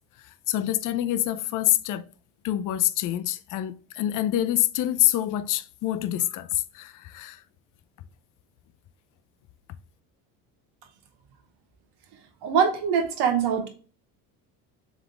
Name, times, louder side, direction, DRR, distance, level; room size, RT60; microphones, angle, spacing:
voice 1, 0.5-2.1 2.4-7.4, left 13 dB, 45° left, 0.5 m, -26 dB
voice 2, 12.4-13.7, right 7 dB, 65° right, 1.3 m, -23 dB
3.6 x 3.6 x 3.3 m
supercardioid pair, 85°, 44 cm